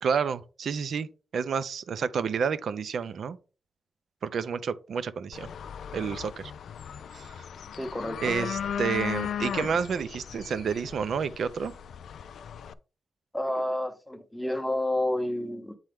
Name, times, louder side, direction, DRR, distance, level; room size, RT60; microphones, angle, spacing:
voice 1, 0.0-3.4 4.2-5.5 5.9-6.5 7.1-7.3 8.2-11.7, right 6 dB, 65° right, 0.5 m, -30 dB
sound 1, 5.3-12.7, left 8 dB, 80° left, 0.4 m, -36 dB
voice 2, 7.8-8.3 13.3-15.8, left 1 dB, 5° left, 0.8 m, -30 dB
7.7 x 4.4 x 3.5 m
wide cardioid pair, 160°, 0 cm